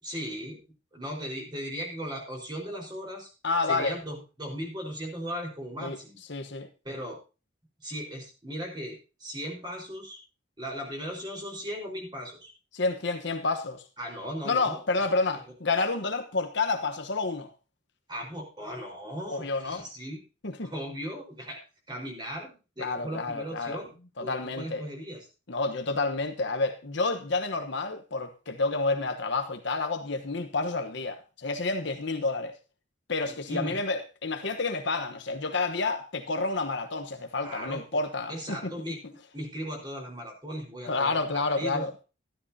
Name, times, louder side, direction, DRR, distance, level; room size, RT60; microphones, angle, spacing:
voice 1, 0.0-0.6 0.9-3.3 3.7-6.2 6.8-7.2 7.8-10.2 10.6-12.5 14.0-14.8 18.1-20.2 20.6-21.6 21.9-23.9 24.2-25.2 33.5-33.8 37.4-37.8 38.3-39.0 39.3-41.9, equal, 25° right, 4.6 m, -37 dB
voice 2, 3.4-3.9 5.8-6.0 6.3-6.7 12.7-13.8 14.4-17.5 19.3-19.8 20.4-20.7 22.8-23.8 24.2-24.9 25.5-32.5 33.1-38.7 40.9-41.9, left 3 dB, 65° left, 1.1 m, -29 dB
13.5 x 12.5 x 2.8 m
head